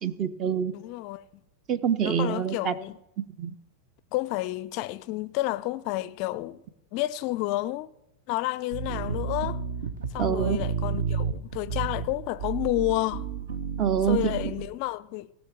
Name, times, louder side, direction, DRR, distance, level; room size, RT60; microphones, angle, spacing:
voice 1, 0.0-0.7 1.7-2.8 3.4-3.6 10.2-10.6 13.8-14.4, right 8 dB, 35° right, 0.7 m, -26 dB
voice 2, 0.7-1.2 2.0-3.0 4.1-6.6 6.9-7.9 8.3-9.6 10.1-13.3 14.1-15.3, left 17 dB, 45° left, 0.4 m, -30 dB
sound 1, 8.7-14.7, right 6 dB, 60° right, 1.1 m, -31 dB
18.0 x 6.1 x 7.4 m
figure-of-eight pair, 90°, 0 cm